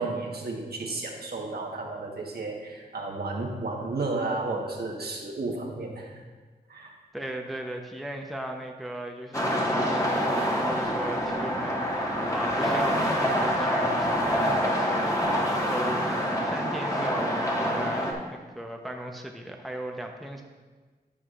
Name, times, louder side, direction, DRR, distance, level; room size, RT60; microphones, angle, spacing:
voice 1, 0.0-6.2 6.7-6.9, right 3 dB, 65° right, 0 dB, 1.3 m, -32 dB
voice 2, 7.1-20.4, right 1 dB, ahead, 2 dB, 0.8 m, -37 dB
sound 1, 9.3-18.1, equal, 20° left, 1.5 m, -26 dB
14.0 x 4.9 x 2.5 m, 1.4 s
cardioid pair, 55°, 17 cm